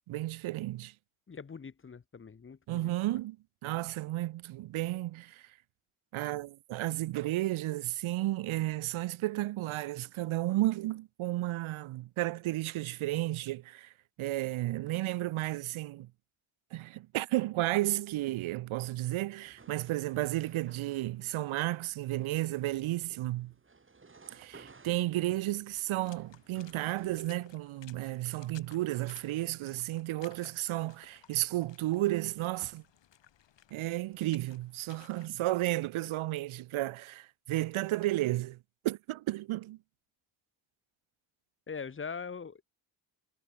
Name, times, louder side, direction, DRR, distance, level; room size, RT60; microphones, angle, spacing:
voice 1, 0.1-0.9 2.7-3.4 3.6-5.4 6.1-13.9 14.2-16.1 16.7-23.5 24.3-32.8 33.7-38.6 38.8-39.8, right 16 dB, 85° right, 0.9 m, -33 dB
voice 2, 1.3-3.2 41.7-42.6, left 5 dB, 25° left, 1.4 m, -42 dB
sound 1, 19.5-27.3, right 4 dB, 25° right, 6.5 m, -57 dB
Water / Splash splatter, 25.9-35.3, left 9 dB, 65° left, 7.7 m, -59 dB
cardioid pair, 135°, 47 cm